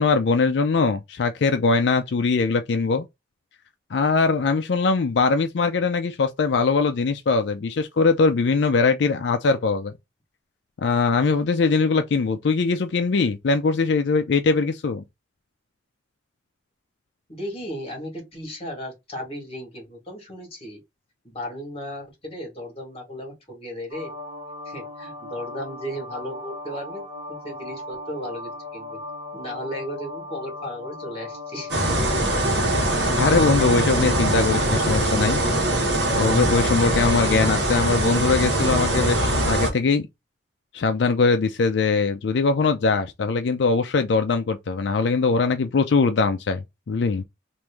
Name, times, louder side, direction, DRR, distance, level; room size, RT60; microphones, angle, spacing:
voice 1, 0.0-3.1 3.9-9.9 10.8-15.0 33.2-35.8 36.1-40.1 40.7-47.2, left 4 dB, 65° left, 0.4 m, -21 dB
voice 2, 17.3-20.8 21.2-24.1 24.6-29.0 29.3-31.7, equal, 30° left, 1.6 m, -35 dB
sound 1, 23.9-34.9, left 1 dB, 35° right, 0.9 m, -37 dB
sound 2, 31.7-39.7, right 1 dB, 65° right, 1.1 m, -22 dB
3.0 x 2.6 x 3.4 m
head